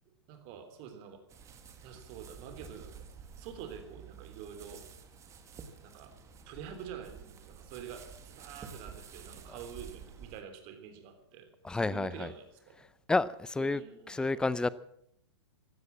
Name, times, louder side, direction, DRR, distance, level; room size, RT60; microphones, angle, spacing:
voice 1, 0.1-1.2 1.8-3.1 3.4-4.9 5.8-6.1 6.5-11.5 11.8-12.8 13.6-14.4, right 8 dB, 40° right, 3.4 m, -47 dB
sound 1, 1.3-10.4, right 6 dB, 20° right, 1.8 m, -50 dB
voice 2, 11.6-12.3 13.1-14.7, left 3 dB, 5° left, 0.5 m, -30 dB
16.0 x 12.5 x 7.3 m
hypercardioid pair, 120°, 14 cm